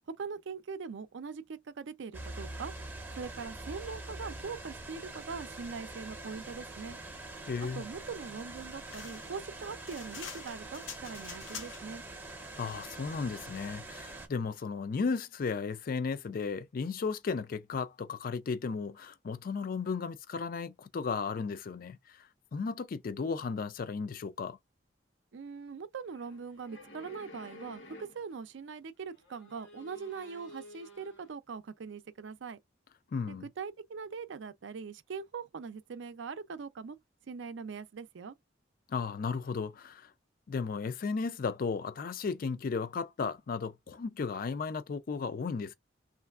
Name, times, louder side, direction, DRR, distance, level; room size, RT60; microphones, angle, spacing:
voice 1, 0.2-2.7 3.2-7.0 7.8-12.0 25.3-32.6 33.3-37.0 37.3-38.4, right 5 dB, 75° right, 0.4 m, -42 dB
sound 1, 2.1-14.3, right 2 dB, 10° right, 0.6 m, -44 dB
voice 2, 7.4-7.8 12.6-22.3 22.5-24.6 33.1-33.5 38.9-40.1 40.5-45.7, left 5 dB, 50° left, 0.4 m, -35 dB
sound 2, 8.9-12.0, left 7 dB, 90° left, 0.7 m, -46 dB
sound 3, 26.0-28.5 29.0-31.3, left 1 dB, 65° left, 1.1 m, -52 dB
3.2 x 2.5 x 2.3 m
head